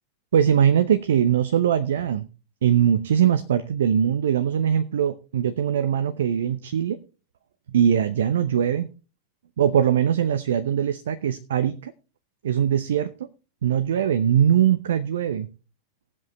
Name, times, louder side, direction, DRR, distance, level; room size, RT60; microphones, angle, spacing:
voice 1, 0.3-2.3 2.6-7.0 7.7-8.9 9.6-11.9 12.4-13.3 13.6-15.5, right 9 dB, 60° right, 11 dB, 0.7 m, -21 dB
18.5 x 7.7 x 3.1 m, 0.33 s
figure-of-eight pair, 90°, 0 cm